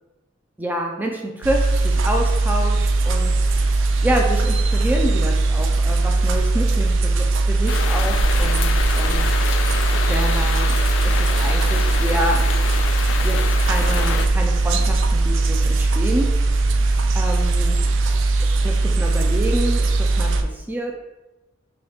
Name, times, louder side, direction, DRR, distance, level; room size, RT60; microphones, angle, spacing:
voice 1, 0.6-3.8 4.0-9.3 10.1-10.8 11.0-12.5 13.2-16.4 17.1-17.8 18.6-21.0, right 1 dB, 10° right, 1 dB, 0.3 m, -27 dB
sound 1, 1.4-20.4, right 3 dB, 90° right, 0.4 m, -19 dB
sound 2, 7.7-14.3, left 6 dB, 80° left, 0.3 m, -28 dB
sound 3, 12.9-18.2, equal, 30° right, 1.2 m, -42 dB
5.1 x 2.3 x 3.4 m, 1.0 s
head